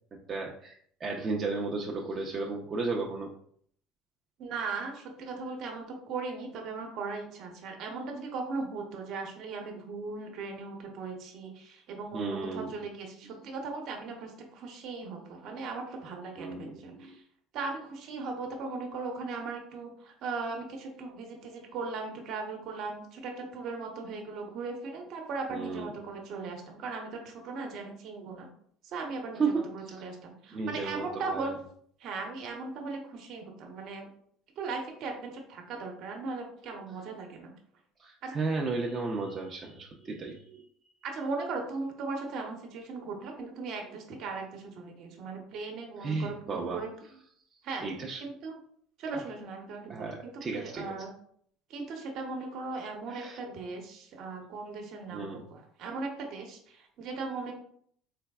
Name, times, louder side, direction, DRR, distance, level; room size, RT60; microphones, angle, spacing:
voice 1, 0.3-3.3 12.1-12.7 16.4-17.2 25.5-25.9 29.4-30.0 30.5-31.5 38.0-40.6 46.0-46.8 47.8-48.2 49.9-50.9 53.1-53.4 55.1-55.4, right 4 dB, 35° right, -1 dB, 0.5 m, -34 dB
voice 2, 4.4-17.2 17.5-28.5 28.8-31.5 32.0-34.1 34.6-37.5 38.2-38.4 41.0-46.9 47.6-47.9 48.2-48.6 49.0-51.1 51.7-57.5, right 4 dB, 60° right, 3 dB, 0.9 m, -38 dB
3.9 x 3.3 x 2.3 m, 0.63 s
hypercardioid pair, 80°, 0 cm